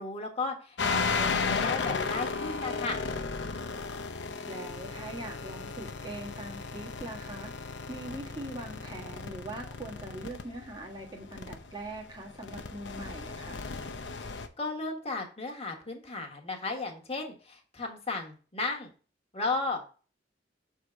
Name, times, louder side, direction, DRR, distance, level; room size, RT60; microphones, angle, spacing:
voice 1, 0.0-3.0 14.6-18.9 19.3-19.9, left 3 dB, 35° left, 2 dB, 1.4 m, -34 dB
sound 1, 0.8-14.5, left 4 dB, 80° left, 0.7 m, -35 dB
voice 2, 4.5-13.6, right 1 dB, 25° right, 0 dB, 1.5 m, -42 dB
6.7 x 3.8 x 4.5 m, 0.37 s
head